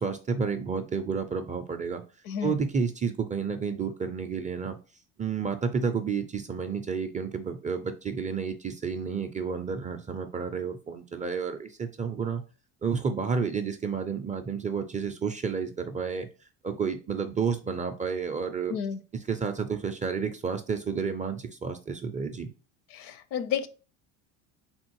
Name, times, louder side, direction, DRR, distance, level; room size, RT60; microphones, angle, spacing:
voice 1, 0.0-2.0 2.4-4.8 5.2-12.4 12.8-16.3 16.6-18.8 19.3-22.5, right 5 dB, 20° right, 0.4 m, -31 dB
voice 2, 2.3-2.6 18.7-19.0 22.9-23.7, left 8 dB, 60° left, 0.7 m, -31 dB
3.7 x 2.5 x 4.5 m
supercardioid pair, 100°, 41 cm